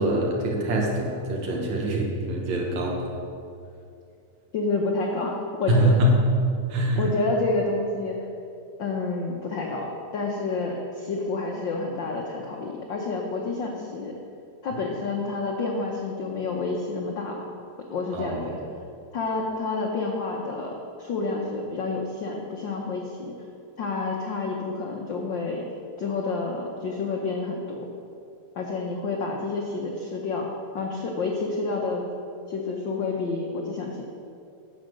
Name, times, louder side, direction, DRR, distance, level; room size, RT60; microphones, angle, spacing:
voice 1, 0.0-3.1 5.7-6.2 6.7-7.0 18.1-18.4, right 1 dB, 75° right, -1 dB, 2.8 m, -24 dB
voice 2, 4.5-5.3 5.6-6.0 7.0-8.2 8.8-14.2 14.6-17.4 17.9-18.6 19.1-23.3 23.8-25.6 26.0-27.9 28.5-32.0 32.5-34.0, left 3 dB, 75° left, 0 dB, 1.0 m, -29 dB
10.0 x 7.4 x 6.3 m, 2.6 s
omnidirectional pair, 3.3 m